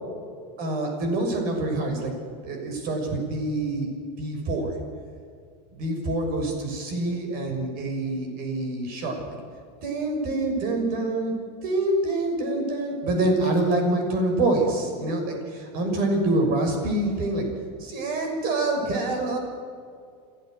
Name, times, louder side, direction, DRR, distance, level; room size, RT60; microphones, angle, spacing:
voice 1, 0.6-2.1 2.4-3.9 4.2-4.7 5.7-9.2 9.8-11.3 11.6-17.4 17.8-19.4, right 2 dB, 45° right, 3 dB, 6.5 m, -26 dB
28.5 x 15.5 x 6.6 m, 2.3 s
supercardioid pair, 150°, 21 cm